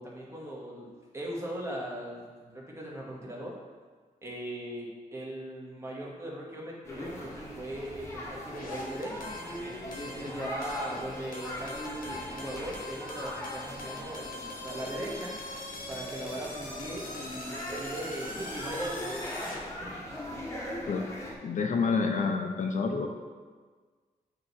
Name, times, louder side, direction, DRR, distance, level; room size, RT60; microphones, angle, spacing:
voice 1, 0.0-3.6 4.2-9.3 10.0-15.3 15.9-20.0, right 1 dB, 20° right, -4 dB, 1.2 m, -39 dB
sound 1, 6.8-21.3, equal, 20° left, 1.0 m, -40 dB
sound 2, 8.5-19.6, left 2 dB, 75° left, 1.1 m, -42 dB
voice 2, 21.4-23.1, left 4 dB, 60° left, 3 dB, 0.5 m, -28 dB
8.6 x 3.0 x 4.0 m, 1.5 s
wide cardioid pair, 150°, 15 cm